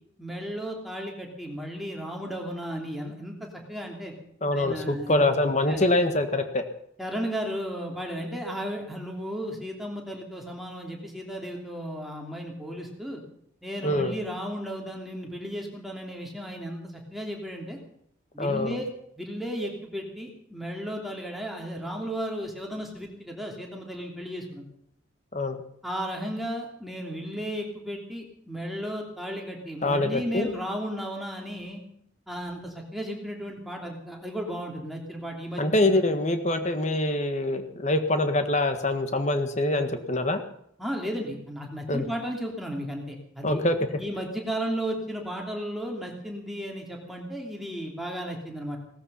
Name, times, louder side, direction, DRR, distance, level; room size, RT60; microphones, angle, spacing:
voice 1, 0.2-4.1 4.5-5.2 5.7-5.8 7.0-13.2 13.6-17.8 18.3-18.9 19.2-24.7 25.8-31.8 32.3-35.6 40.8-48.8, equal, ahead, 0 dB, 3.1 m, -34 dB
voice 2, 4.4-6.6 13.8-14.1 18.4-18.8 25.3-25.6 29.8-30.5 35.6-40.4 41.9-42.0 43.4-43.7, left 2 dB, 35° left, 8 dB, 1.6 m, -24 dB
18.0 x 13.5 x 5.7 m, 0.70 s
head